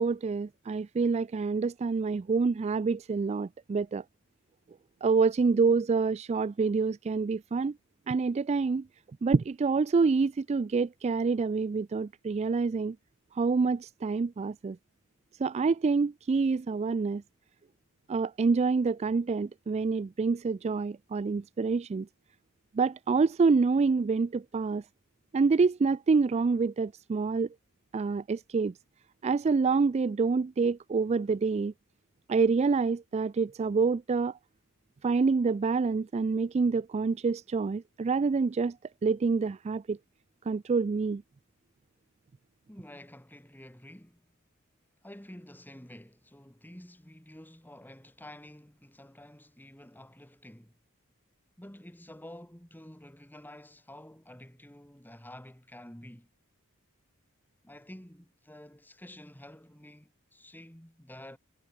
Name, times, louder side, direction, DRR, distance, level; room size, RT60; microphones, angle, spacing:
voice 1, 0.0-4.0 5.0-7.7 8.1-8.9 9.2-13.0 13.3-14.8 15.4-17.2 18.1-22.1 22.7-24.8 25.3-27.5 27.9-28.7 29.2-31.7 32.3-34.4 35.0-38.8 39.0-40.0 40.5-41.2, right 4 dB, 30° right, 0.3 m, -27 dB
voice 2, 42.7-44.3 45.0-50.8 51.6-56.3 57.6-61.4, left 1 dB, 10° left, 2.8 m, -50 dB
head